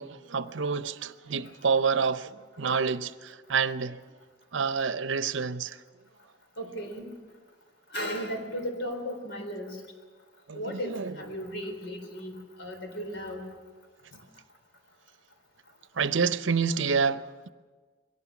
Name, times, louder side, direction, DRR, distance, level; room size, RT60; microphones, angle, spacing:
voice 1, 0.0-4.0 4.5-5.8 10.5-11.3 16.0-17.5, right 5 dB, 80° right, 0.7 m, -28 dB
voice 2, 6.6-7.1 7.9-9.8 10.5-13.5, equal, 70° left, 4.0 m, -35 dB
22.5 x 17.5 x 7.2 m
head